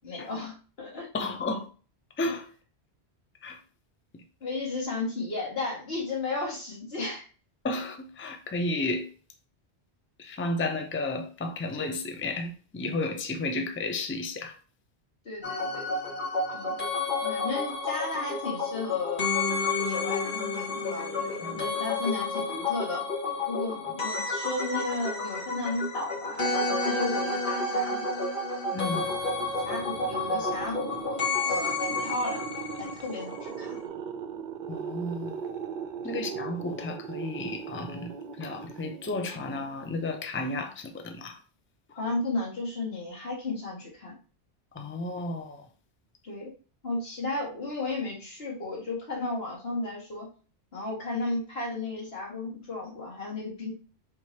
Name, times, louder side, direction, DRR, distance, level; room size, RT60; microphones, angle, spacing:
voice 1, 0.0-1.1 4.4-7.3 15.3-15.9 16.5-16.8 17.2-19.3 19.8-23.0 23.5-28.2 29.6-32.5 32.8-33.8 36.1-36.4 41.9-44.1 46.2-46.5 46.8-50.3 50.7-53.7, left 2 dB, 65° left, 2.0 m, -34 dB
voice 2, 1.1-1.7 2.2-2.4 3.4-3.6 7.6-9.1 10.2-14.5 21.4-21.7 28.7-29.1 34.7-35.4 36.0-41.4 44.7-45.7, left 2 dB, 15° left, 0.4 m, -33 dB
sound 1, 15.4-33.5 33.8-33.9, left 3 dB, 50° left, 1.8 m, -30 dB
sound 2, 28.8-39.9, right 6 dB, 60° right, 0.7 m, -39 dB
4.7 x 3.6 x 2.8 m
omnidirectional pair, 1.1 m